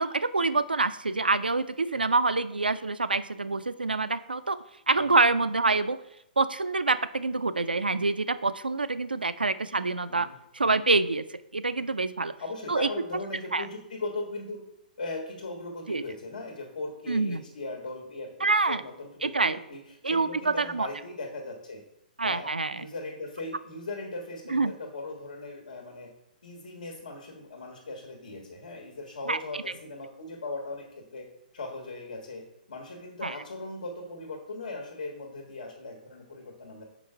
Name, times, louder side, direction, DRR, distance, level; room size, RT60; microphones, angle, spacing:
voice 1, 0.0-6.0 6.4-10.3 10.5-12.3 12.7-12.9 13.5-13.7 15.9-16.0 17.1-17.4 18.4-18.8 19.2-19.6 20.0-20.9 22.2-22.9 24.5-24.7 29.3-29.4 33.2-33.4, right 3 dB, 85° right, 14 dB, 0.4 m, -26 dB
voice 2, 12.4-14.6 15.0-21.8 22.2-26.1 26.4-31.3 31.5-36.8, left 2 dB, 65° left, 2 dB, 1.4 m, -39 dB
5.9 x 5.0 x 4.4 m, 0.82 s
figure-of-eight pair, 120°, 5 cm